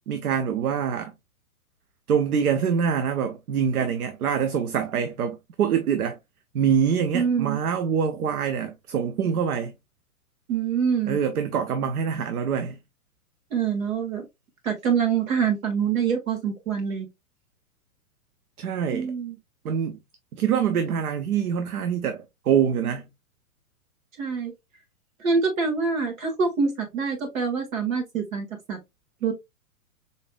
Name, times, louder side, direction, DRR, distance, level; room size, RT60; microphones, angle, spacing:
voice 1, 0.1-1.1 2.1-6.2 6.5-9.7 11.1-12.8 18.6-19.1 19.6-20.0 20.3-23.1, right 7 dB, 80° right, 0.6 m, -25 dB
voice 2, 7.1-7.6 10.5-11.2 13.5-14.2 14.6-17.1 18.9-19.4 24.2-24.5 25.2-28.8 29.2-29.3, right 6 dB, 65° right, 1.9 m, -25 dB
4.1 x 3.4 x 2.2 m
hypercardioid pair, 110°, 44 cm